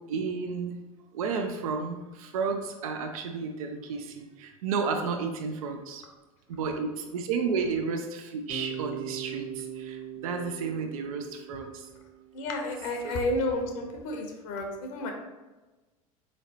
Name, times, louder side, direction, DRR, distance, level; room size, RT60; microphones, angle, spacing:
voice 1, 0.1-0.8 1.1-6.1 6.5-11.9 13.0-13.2, right 5 dB, 75° right, 5 dB, 0.4 m, -32 dB
Bass guitar, 8.5-12.5, right 8 dB, 50° right, 1.0 m, -40 dB
voice 2, 12.3-15.1, left 1 dB, 65° left, 3 dB, 0.7 m, -31 dB
3.9 x 3.2 x 2.8 m, 1.2 s
hypercardioid pair, 85°, 18 cm